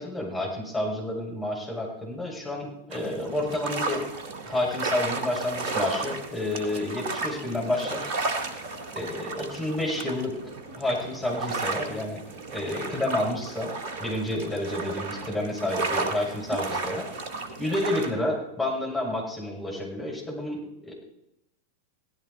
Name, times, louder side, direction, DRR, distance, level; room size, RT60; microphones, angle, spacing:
voice 1, 0.0-4.0 4.4-8.1 8.9-10.3 10.7-12.2 12.5-13.7 14.0-17.1 17.6-20.9, left 1 dB, 10° left, -3 dB, 6.4 m, -30 dB
sound 1, 2.9-18.1, right 3 dB, 50° right, 1.8 m, -33 dB
17.0 x 14.0 x 4.3 m, 0.83 s
figure-of-eight pair, 90°, 0 cm